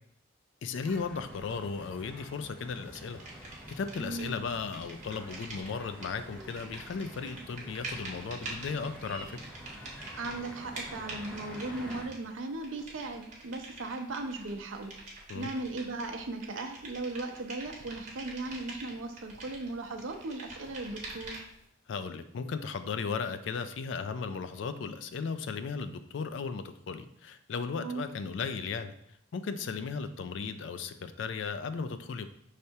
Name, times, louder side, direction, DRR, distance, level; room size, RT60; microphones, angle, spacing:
voice 1, 0.6-9.4 15.3-15.5 21.9-28.9 29.3-32.3, left 5 dB, 60° left, 10 dB, 0.3 m, -36 dB
sound 1, 0.8-12.1, equal, 5° left, 0.6 m, -48 dB
sound 2, 3.0-4.4 4.6-21.6, right 2 dB, 35° right, 1.0 m, -46 dB
voice 2, 4.0-4.3 10.1-14.9 15.3-21.3 27.8-28.0, right 2 dB, 70° right, 5 dB, 0.6 m, -37 dB
5.5 x 3.3 x 2.8 m, 0.72 s
head